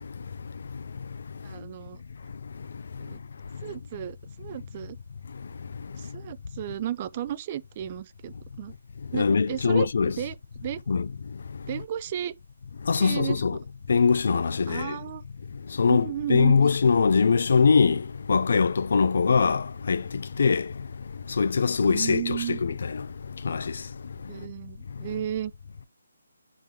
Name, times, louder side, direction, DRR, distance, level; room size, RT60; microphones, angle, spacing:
voice 1, 1.4-2.0 3.0-3.2 3.6-5.0 5.9-8.7 9.1-9.9 10.2-10.8 11.7-12.4 12.9-13.4 14.7-15.2 15.9-16.6 21.8-22.7 24.3-25.5, right 11 dB, 30° right, 0.3 m, -33 dB
voice 2, 9.1-10.1 10.9-11.1 12.9-13.6 13.9-14.9 15.8-18.0 18.3-20.0 20.4-20.6 21.4-22.8 23.4-23.6, left 5 dB, 55° left, 0.4 m, -22 dB
9.0 x 3.8 x 3.0 m
figure-of-eight pair, 150°, 0 cm